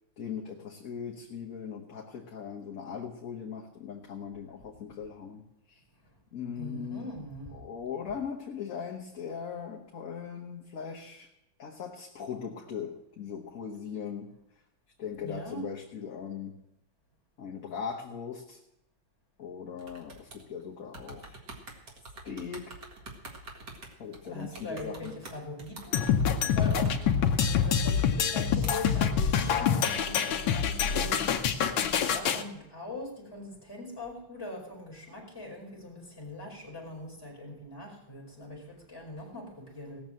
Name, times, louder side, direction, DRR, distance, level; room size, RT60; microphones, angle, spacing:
voice 1, 0.2-5.8 6.3-7.1 7.5-11.3 11.6-14.3 15.0-16.6 17.4-18.6 19.4-21.4 22.2-22.8 24.0-25.2, left 7 dB, 50° left, -1 dB, 1.5 m, -39 dB
voice 2, 6.6-7.7 15.2-15.7 24.2-31.5 32.0-40.0, left 1 dB, 10° left, -2 dB, 4.8 m, -42 dB
Keyboard Typing, 19.8-20.6 20.9-28.3 28.6-29.9, right 2 dB, 60° right, 2.5 m, -47 dB
sound 1, 25.9-32.4, left 7 dB, 80° left, 1.7 m, -26 dB
18.0 x 6.9 x 7.6 m, 0.89 s
omnidirectional pair, 2.1 m